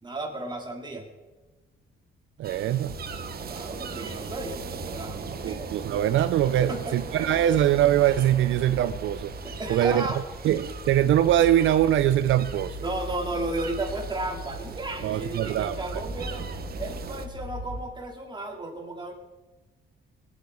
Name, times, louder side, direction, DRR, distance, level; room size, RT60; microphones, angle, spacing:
voice 1, 0.0-1.1 3.5-5.7 6.7-6.9 7.2-7.3 9.4-10.2 12.8-16.5 16.8-19.1, right 2 dB, 20° right, 1 dB, 2.9 m, -34 dB
sound 1, 2.4-17.3, right 7 dB, 50° right, 1.1 m, -40 dB
voice 2, 2.4-3.0 5.4-9.3 9.7-10.0 10.4-12.8 15.0-16.0, right 11 dB, 75° right, 12 dB, 0.5 m, -23 dB
sound 2, 2.9-17.9, left 1 dB, 25° left, 4.4 m, -40 dB
19.0 x 9.5 x 4.7 m, 1.2 s
cardioid pair, 90°, 20 cm